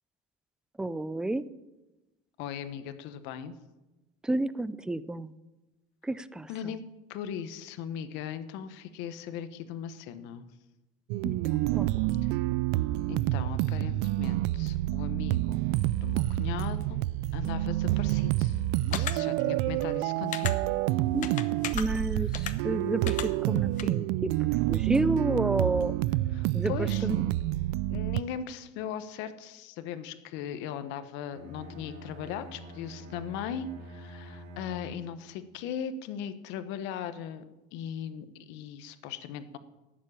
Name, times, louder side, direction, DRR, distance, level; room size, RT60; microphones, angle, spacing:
voice 1, 0.8-1.5 4.2-5.3 6.0-6.7 11.2-12.2 21.1-21.4 21.7-25.9 26.5-27.3, right 2 dB, 5° right, 16 dB, 0.3 m, -31 dB
voice 2, 2.4-3.5 6.5-6.8 7.1-10.5 13.1-15.6 16.0-17.0 17.3-18.6 18.9-20.5 26.3-27.2 27.9-37.4 37.7-39.6, left 8 dB, 65° left, 11 dB, 1.1 m, -38 dB
sound 1, 11.1-28.2, right 16 dB, 75° right, 0.4 m, -28 dB
sound 2, 18.9-19.1 20.3-20.5 21.2-21.8 22.3-22.5 23.1-23.3 23.8-23.9, left 10 dB, 40° left, 0.9 m, -33 dB
Bowed string instrument, 31.3-35.3, equal, 55° right, 1.9 m, -46 dB
11.5 x 7.5 x 8.6 m, 1.1 s
cardioid pair, 145°, 20 cm